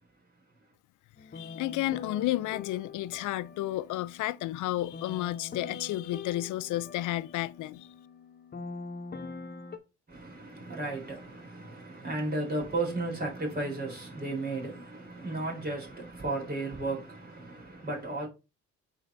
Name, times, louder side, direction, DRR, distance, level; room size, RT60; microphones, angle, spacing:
sound 1, 1.2-9.8, left 4 dB, 35° left, 0.9 m, -44 dB
voice 1, 1.3-7.9, left 15 dB, 80° left, 0.5 m, -32 dB
voice 2, 10.1-18.3, right 2 dB, 30° right, 3.8 m, -34 dB
8.5 x 4.6 x 2.6 m
cardioid pair, 90°, 30 cm